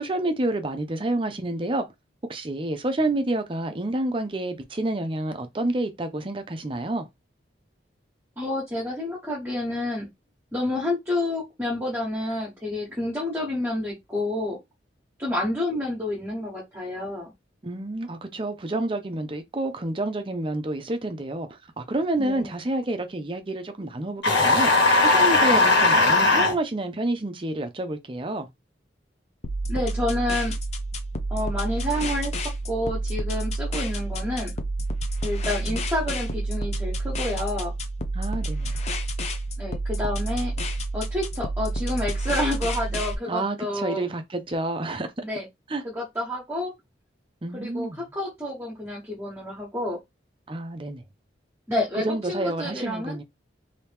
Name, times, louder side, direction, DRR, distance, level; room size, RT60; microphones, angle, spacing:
voice 1, 0.0-1.9 2.3-7.1 17.6-24.7 25.0-28.5 35.7-35.8 38.1-38.7 43.3-45.1 45.7-45.8 47.4-48.1 50.5-51.0 52.0-53.2, right 2 dB, 30° right, 0.5 m, -29 dB
voice 2, 8.4-10.1 10.5-14.6 15.2-17.3 22.2-22.5 25.5-25.6 29.7-30.5 31.3-34.5 35.2-37.7 39.6-40.5 40.9-44.1 45.2-45.5 45.8-46.7 47.5-50.0 51.7-53.2, left 1 dB, 15° right, 1.1 m, -29 dB
sound 1, 24.2-26.5, left 2 dB, 70° left, 1.6 m, -18 dB
sound 2, 29.4-43.1, right 1 dB, 35° left, 0.5 m, -29 dB
2.9 x 2.8 x 3.4 m
head